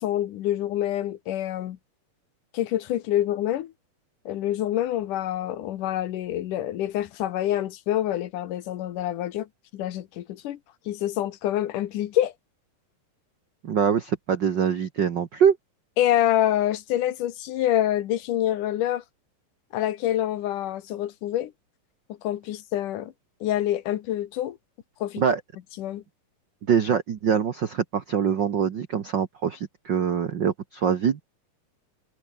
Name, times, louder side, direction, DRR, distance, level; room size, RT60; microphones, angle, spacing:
voice 1, 0.0-1.8 2.5-3.7 4.3-9.5 9.7-10.6 10.9-12.3 16.0-19.0 19.7-21.5 22.2-23.1 23.4-24.6 25.0-25.2 25.8-26.0, left 12 dB, 70° left, 2.6 m, -26 dB
voice 2, 13.6-15.6 25.2-25.4 26.7-31.2, right 7 dB, 75° right, 1.0 m, -24 dB
omnidirectional pair, 4.0 m